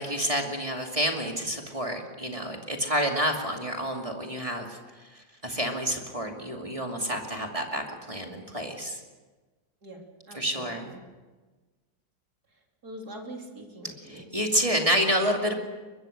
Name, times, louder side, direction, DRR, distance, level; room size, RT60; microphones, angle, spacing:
voice 1, 0.0-9.0 10.3-10.9 14.0-15.6, equal, 15° right, 2 dB, 2.5 m, -29 dB
voice 2, 9.8-11.0 12.8-14.3, right 1 dB, 55° right, 1 dB, 3.9 m, -43 dB
23.0 x 22.0 x 6.6 m, 1.3 s
omnidirectional pair, 2.0 m